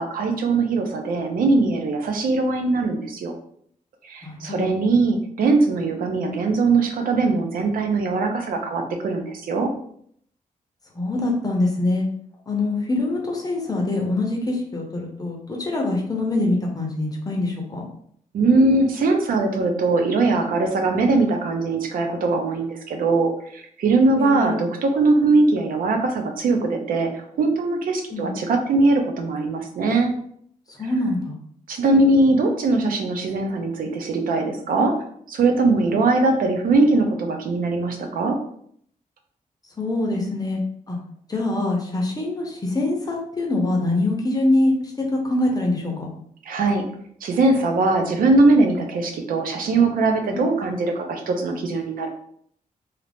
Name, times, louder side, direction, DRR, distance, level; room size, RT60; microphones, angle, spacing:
voice 1, 0.0-3.3 4.0-9.7 18.3-30.1 31.7-34.9 35.3-38.4 46.5-46.8 47.2-52.1, right 3 dB, 90° right, 4 dB, 0.6 m, -21 dB
voice 2, 4.2-4.7 10.9-12.0 12.5-17.8 24.2-24.6 28.1-28.3 30.8-31.4 39.8-40.6 40.9-41.0 41.3-46.1, left 2 dB, 25° left, 0 dB, 0.7 m, -24 dB
2.8 x 2.4 x 3.4 m, 0.65 s
wide cardioid pair, 115°, 14 cm